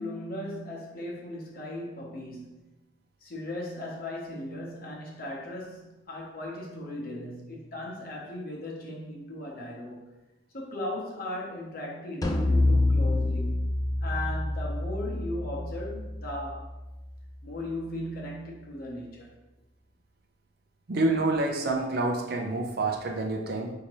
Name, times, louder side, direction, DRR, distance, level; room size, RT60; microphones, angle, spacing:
voice 1, 0.0-2.6 3.2-10.1 10.5-13.7 14.0-16.7 17.4-19.3, left 1 dB, 50° left, -2 dB, 0.9 m, -37 dB
sound 1, 12.2-17.6, left 2 dB, 20° left, 0.4 m, -28 dB
voice 2, 20.9-23.7, right 2 dB, 55° right, 2 dB, 0.5 m, -27 dB
5.0 x 2.8 x 3.0 m, 1.0 s
head